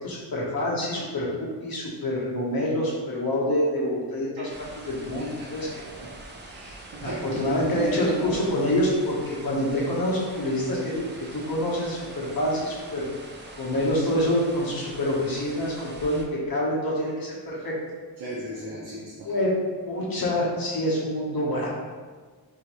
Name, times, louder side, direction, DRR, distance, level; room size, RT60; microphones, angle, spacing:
voice 1, 0.0-5.7 7.0-13.1 13.6-17.7 19.2-19.6 19.8-21.7, left 1 dB, 65° left, -5 dB, 1.2 m, -26 dB
sound 1, 4.5-16.2, right 2 dB, 30° right, 0.5 m, -44 dB
voice 2, 6.5-7.2 7.5-8.4 18.2-19.3, right 1 dB, 70° right, -5 dB, 0.8 m, -34 dB
3.9 x 3.0 x 3.1 m, 1.5 s
wide cardioid pair, 115°, 38 cm